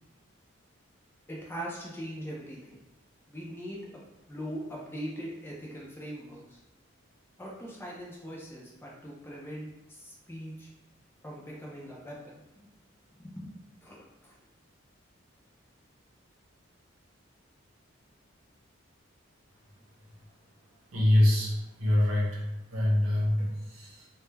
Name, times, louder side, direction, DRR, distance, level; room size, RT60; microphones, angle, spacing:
voice 1, 1.3-2.8 3.3-4.0 4.3-6.6 7.4-10.7 11.2-12.4 13.2-13.5 13.8-14.4, equal, 10° left, -3 dB, 0.4 m, -41 dB
voice 2, 20.9-22.4 22.7-24.1, left 1 dB, 85° right, -3 dB, 0.7 m, -25 dB
2.2 x 2.0 x 3.2 m, 0.98 s
head